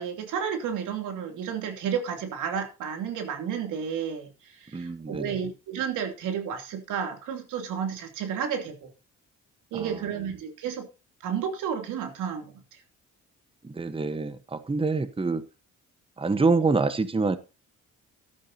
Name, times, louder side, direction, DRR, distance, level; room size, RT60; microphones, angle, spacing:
voice 1, 0.0-8.9 9.7-10.9 11.2-12.5, right 7 dB, 90° right, 5 dB, 2.9 m, -32 dB
voice 2, 4.7-5.4 9.7-10.0 13.6-15.4 16.2-17.4, right 3 dB, 20° right, 12 dB, 1.1 m, -26 dB
15.0 x 12.0 x 2.8 m, 0.29 s
cardioid pair, 90°, 30 cm